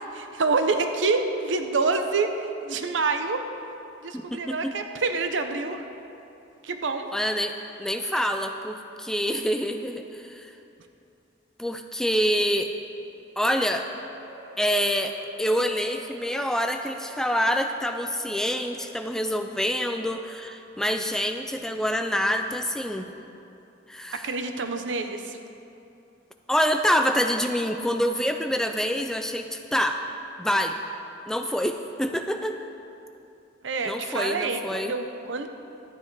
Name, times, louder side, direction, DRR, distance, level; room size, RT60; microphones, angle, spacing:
voice 1, 0.1-3.5 4.0-5.9 6.6-7.1 24.1-25.4 33.6-35.5, right 3 dB, 90° right, 7 dB, 0.7 m, -27 dB
voice 2, 4.1-4.7 7.1-10.5 11.6-12.7 13.4-13.9 14.6-23.1 23.9-24.3 26.5-30.0 30.4-30.8 31.3-32.6 33.9-34.9, equal, 5° left, 5 dB, 0.4 m, -26 dB
sound 1, 14.0-19.4, right 1 dB, 25° right, 2.1 m, -48 dB
12.0 x 8.4 x 4.7 m, 2.8 s
head